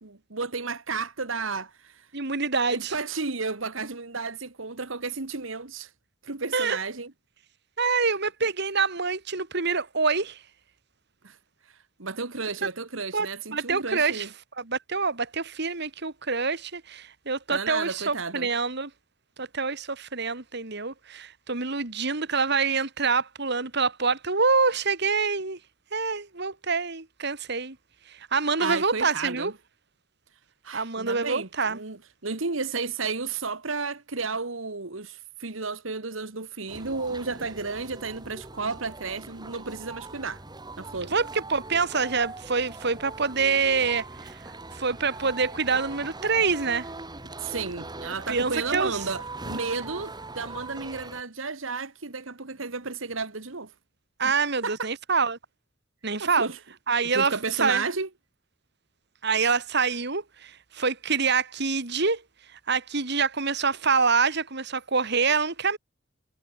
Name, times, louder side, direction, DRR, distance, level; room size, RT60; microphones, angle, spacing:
voice 1, 0.0-2.1 2.7-5.9 6.2-7.1 11.2-11.4 11.7-14.3 17.5-18.5 28.6-29.5 30.6-32.0 32.2-40.4 40.8-41.1 47.4-53.7 54.2-54.3 54.6-54.9 56.2-56.6 57.1-58.1, right 4 dB, 75° right, 1.8 m, -32 dB
voice 2, 2.1-2.9 6.5-6.8 7.8-10.4 13.1-14.3 14.6-18.9 19.4-25.6 25.9-27.8 28.3-29.5 30.7-31.8 41.1-44.4 44.7-46.9 48.3-49.0 54.2-55.4 56.0-56.5 56.9-57.8 59.2-62.2 62.7-65.8, right 4 dB, 55° right, 2.4 m, -26 dB
sound 1, 36.7-51.2, right 2 dB, 20° right, 2.8 m, -41 dB
head